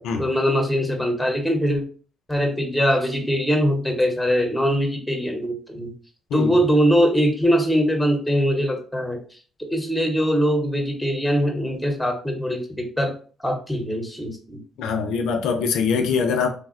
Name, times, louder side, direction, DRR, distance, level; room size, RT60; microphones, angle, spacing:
voice 1, 0.2-1.8 2.3-5.9 6.3-9.2 9.7-13.1 13.4-14.6, equal, 5° left, 0.8 m, -22 dB
voice 2, 14.8-16.5, left 5 dB, 85° left, 0.4 m, -23 dB
3.3 x 2.1 x 2.4 m
cardioid pair, 90°, 0 cm